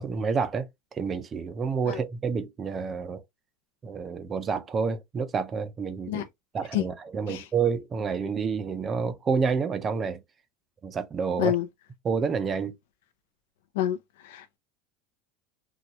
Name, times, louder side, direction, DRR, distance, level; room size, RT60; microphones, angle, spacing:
voice 1, 0.0-3.2 3.8-6.2 6.5-10.2 10.8-11.6 12.0-12.7, right 5 dB, 20° right, 0.4 m, -29 dB
voice 2, 13.7-14.6, left 12 dB, 90° left, 0.4 m, -28 dB
3.9 x 2.3 x 2.9 m
supercardioid pair, 175°, 0 cm